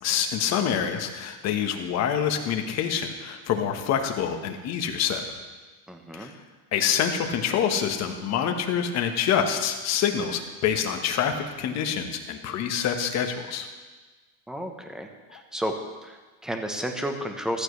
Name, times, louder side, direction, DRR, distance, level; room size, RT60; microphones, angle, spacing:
voice 1, 0.0-5.2 6.1-6.3 6.7-13.7, left 8 dB, 40° left, 5 dB, 1.4 m, -26 dB
voice 2, 5.9-6.3 14.5-15.7 16.0-17.6, equal, ahead, 4 dB, 1.0 m, -32 dB
14.5 x 14.0 x 3.3 m, 1.3 s
supercardioid pair, 145°, 43 cm